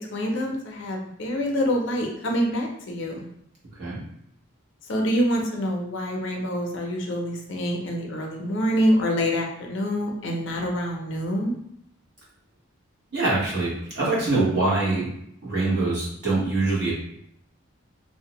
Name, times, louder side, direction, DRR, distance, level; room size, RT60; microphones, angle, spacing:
voice 1, 0.1-3.3 4.9-11.5, equal, 60° left, 1 dB, 0.4 m, -26 dB
voice 2, 13.1-15.1 15.4-17.0, right 2 dB, 50° right, -7 dB, 1.0 m, -24 dB
2.5 x 2.0 x 2.8 m, 0.73 s
head